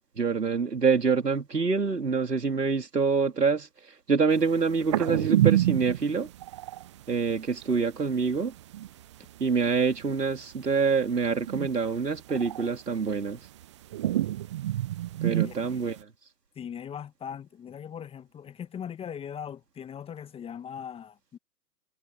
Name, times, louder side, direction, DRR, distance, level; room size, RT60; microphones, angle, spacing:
voice 1, 0.2-3.7 4.1-6.3 7.1-8.5 9.4-13.4 15.2-16.0, right 5 dB, 80° right, 3.5 m, -26 dB
sound 1, 4.6-7.0 7.3-7.4 7.6-7.9 8.4-8.9 9.1-10.4 10.8-11.9 12.1-13.6 13.9-16.0, right 13 dB, 20° right, 0.5 m, -28 dB
voice 2, 15.3-15.8 16.6-21.4, left 8 dB, 10° left, 1.8 m, -40 dB
figure-of-eight pair, 125°, 48 cm